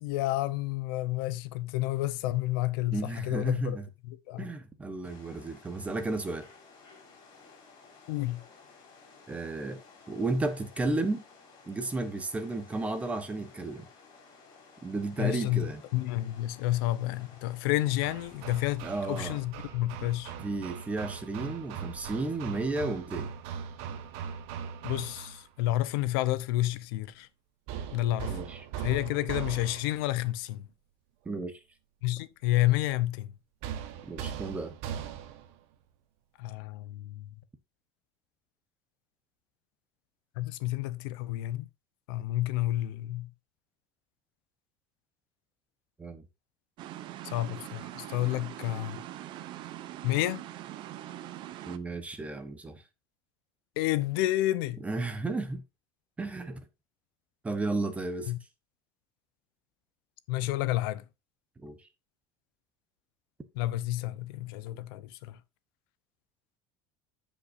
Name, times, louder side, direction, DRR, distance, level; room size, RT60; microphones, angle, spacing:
voice 1, 0.0-3.8 4.0-4.5 8.1-8.4 15.2-20.3 24.8-27.3 27.9-28.4 28.8-30.7 32.0-33.3 36.4-37.3 40.4-41.7 42.1-43.3 47.2-49.0 50.0-50.4 53.8-54.8 58.3-58.4 60.3-61.0 63.6-65.4, left 16 dB, 85° left, 0.8 m, -30 dB
voice 2, 2.9-3.9 4.4-6.5 9.3-9.8 10.1-11.2 11.7-13.9 14.8-15.8 18.8-19.4 20.4-23.3 28.3-28.6 31.2-31.6 34.0-34.7 46.0-46.2 51.6-52.8 54.8-55.6 56.2-56.6 57.4-58.3 61.6-61.8, right 2 dB, 10° right, 1.0 m, -33 dB
sound 1, 5.0-19.5, left 4 dB, 40° left, 4.5 m, -55 dB
Hammer, 18.0-25.5 27.7-30.1 33.6-35.5, right 8 dB, 60° right, 1.3 m, -40 dB
sound 2, 46.8-51.8, right 13 dB, 45° right, 0.7 m, -42 dB
15.5 x 5.3 x 2.6 m
cardioid pair, 165°, 12 cm